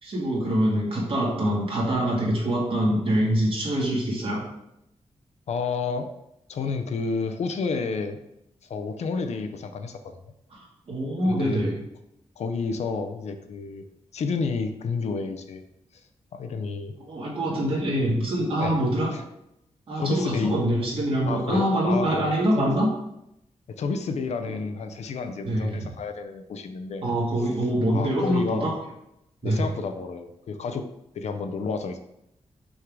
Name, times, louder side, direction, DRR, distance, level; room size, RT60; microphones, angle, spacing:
voice 1, 0.0-4.4 10.5-11.7 17.0-19.1 19.9-22.9 24.5-24.6 25.4-25.8 27.0-28.8 29.4-29.7, right 1 dB, 50° right, -3 dB, 1.9 m, -25 dB
voice 2, 5.5-6.1 6.5-8.2 8.6-10.2 11.2-11.6 12.4-13.8 14.1-15.6 16.3-16.9 18.6-18.8 19.1-19.2 20.0-20.6 21.3-22.7 23.7-27.0 27.9-28.7 29.4-30.9 31.1-32.0, left 4 dB, 70° left, 7 dB, 0.6 m, -30 dB
6.3 x 3.8 x 4.6 m, 0.81 s
wide cardioid pair, 160°, 12 cm